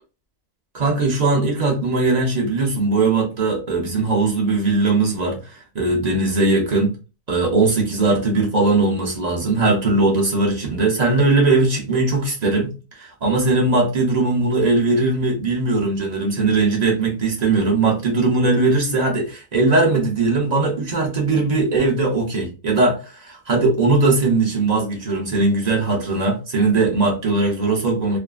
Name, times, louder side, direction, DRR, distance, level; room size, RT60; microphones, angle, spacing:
voice 1, 0.7-7.0 7.3-28.2, right 3 dB, 50° right, 0.5 m, -19 dB
2.6 x 2.4 x 2.3 m
omnidirectional pair, 1.6 m